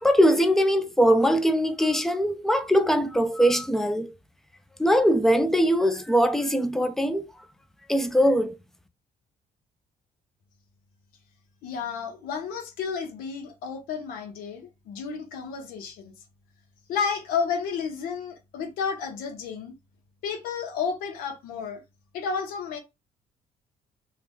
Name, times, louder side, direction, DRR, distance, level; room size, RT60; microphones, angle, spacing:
voice 1, 0.0-4.1 4.8-7.3 7.9-8.5, equal, ahead, 0.4 m, -21 dB
voice 2, 11.6-16.1 16.9-19.7 20.2-21.8 22.1-22.8, left 6 dB, 85° left, 0.9 m, -31 dB
2.9 x 2.2 x 3.4 m
cardioid pair, 115°, 15 cm